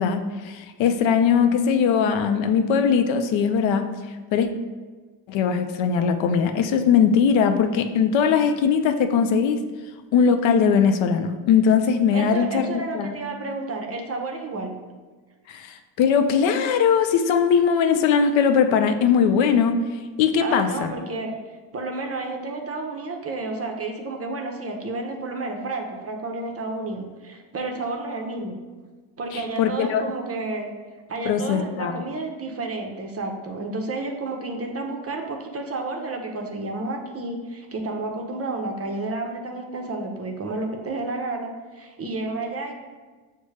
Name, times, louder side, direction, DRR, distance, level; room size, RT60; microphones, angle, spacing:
voice 1, 0.0-3.8 4.3-4.5 5.3-9.6 10.1-12.7 12.9-13.2 15.5-19.8 20.2-20.9 29.3-30.0 31.3-32.0, left 6 dB, 65° left, 8 dB, 0.5 m, -20 dB
voice 2, 12.1-14.8 20.4-21.3 21.7-28.6 29.2-30.7 31.1-42.7, right 2 dB, 30° right, 3 dB, 0.6 m, -31 dB
6.1 x 2.2 x 3.2 m, 1.3 s
supercardioid pair, 75°, 50 cm